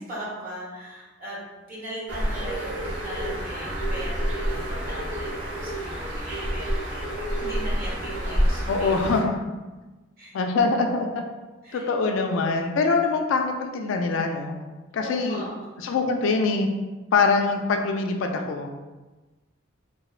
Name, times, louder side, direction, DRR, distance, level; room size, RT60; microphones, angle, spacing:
voice 1, 0.0-8.9 10.2-10.3 11.6-11.8 15.0-15.7, equal, 45° right, -7 dB, 0.9 m, -39 dB
Bird, 2.1-9.2, equal, 85° right, 1.0 m, -28 dB
voice 2, 8.7-9.4 10.3-11.1 11.7-14.5 14.9-15.4 15.8-16.7 17.1-18.7, left 4 dB, 70° left, 4 dB, 0.3 m, -23 dB
2.8 x 2.0 x 2.3 m, 1.2 s
head